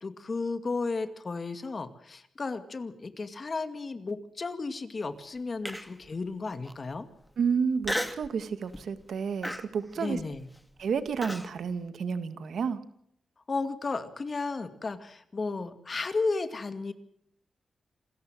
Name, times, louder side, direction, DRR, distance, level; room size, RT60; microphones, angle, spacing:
voice 1, 0.0-7.1 10.0-10.5 13.5-16.9, left 3 dB, 45° left, 10 dB, 2.2 m, -33 dB
Human voice, 5.7-6.1 6.6-6.7 7.8-8.3 8.7-9.0 9.4-11.5, equal, 5° left, 2.4 m, -34 dB
voice 2, 7.4-10.2 10.8-12.8, right 6 dB, 80° right, 11 dB, 1.8 m, -30 dB
27.5 x 14.0 x 7.6 m, 0.72 s
cardioid pair, 75°, 0 cm